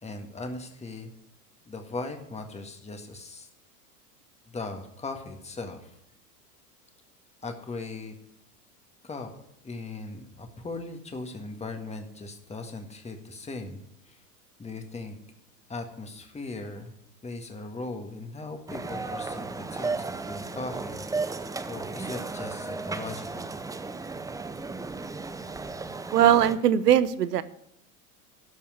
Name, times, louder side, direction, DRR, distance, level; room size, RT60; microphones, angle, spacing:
voice 1, 0.0-1.1 1.6-3.5 4.5-6.0 7.4-8.1 9.0-9.3 9.6-14.2 14.6-15.2 15.7-16.9 17.2-23.6, left 3 dB, 15° left, 5 dB, 1.8 m, -39 dB
sound 1, 18.7-26.6, right 3 dB, 10° right, 0.6 m, -34 dB
voice 2, 26.1-27.4, right 10 dB, 85° right, 15 dB, 0.8 m, -20 dB
12.5 x 5.5 x 8.1 m, 0.77 s
hypercardioid pair, 95°, 46 cm